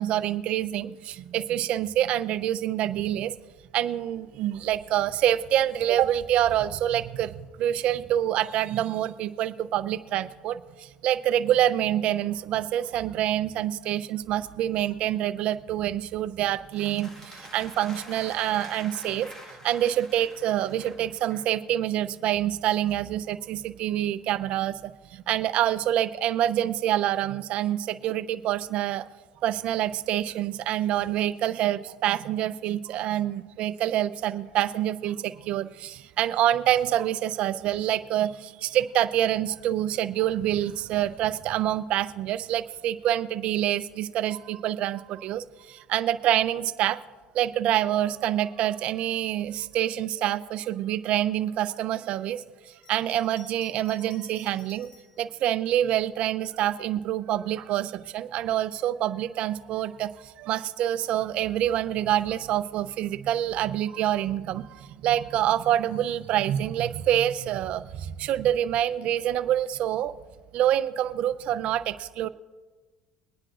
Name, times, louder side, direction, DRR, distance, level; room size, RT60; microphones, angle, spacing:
voice 1, 0.0-3.3 3.7-19.3 19.6-29.1 29.4-47.0 47.3-54.9 55.2-70.1 70.5-72.3, right 12 dB, 60° right, 14 dB, 0.6 m, -26 dB
sound 1, 16.7-21.6, equal, 25° left, 1.8 m, -46 dB
Bell, 52.7-55.2 55.9-56.8, left 4 dB, 55° left, 1.9 m, -54 dB
23.0 x 9.8 x 2.5 m, 1.3 s
supercardioid pair, 100°, 2 cm